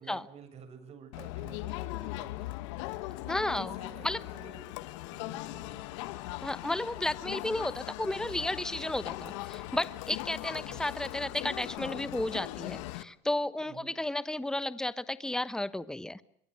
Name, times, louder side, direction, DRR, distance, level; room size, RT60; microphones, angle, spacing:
voice 1, 0.0-2.6 3.0-5.8 10.5-10.9 13.6-14.0, right 5 dB, 45° right, 10 dB, 7.3 m, -52 dB
Crowd, 1.1-13.0, left 18 dB, 85° left, 1.4 m, -39 dB
voice 2, 3.3-3.7 4.0-4.2 6.4-16.2, left 1 dB, 5° left, 16 dB, 1.1 m, -33 dB
26.5 x 23.0 x 6.5 m, 0.71 s
supercardioid pair, 105°, 15 cm